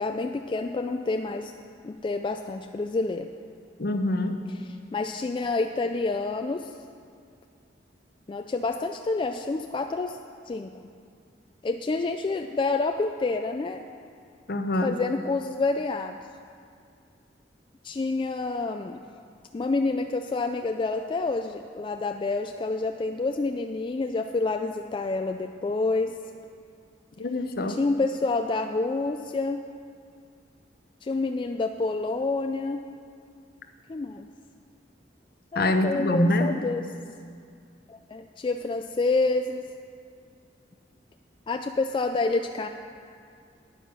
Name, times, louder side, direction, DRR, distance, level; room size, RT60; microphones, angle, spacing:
voice 1, 0.0-1.5 1.8-3.3 4.9-6.7 8.3-10.2 10.5-10.7 11.6-13.8 14.8-16.2 17.8-19.0 19.5-26.1 27.7-29.6 31.0-32.8 33.9-34.3 35.5-36.9 37.9-39.6 41.5-42.7, left 3 dB, 25° left, 6 dB, 0.3 m, -28 dB
voice 2, 3.8-4.4 14.5-15.0 27.2-27.8 35.5-36.5, left 1 dB, 55° left, 7 dB, 0.8 m, -25 dB
10.0 x 9.1 x 6.1 m, 2.3 s
head